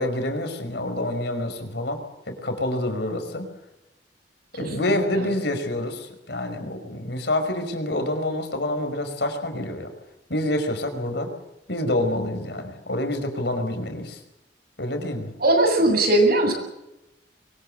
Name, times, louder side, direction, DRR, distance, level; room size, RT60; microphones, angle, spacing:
voice 1, 0.0-2.0 2.3-3.5 4.5-9.9 10.3-11.3 11.7-14.2 14.8-15.3, left 1 dB, 65° left, 6 dB, 5.4 m, -27 dB
voice 2, 4.6-5.3 15.4-16.5, right 1 dB, 55° right, 4 dB, 7.7 m, -20 dB
24.0 x 22.0 x 7.9 m, 0.89 s
head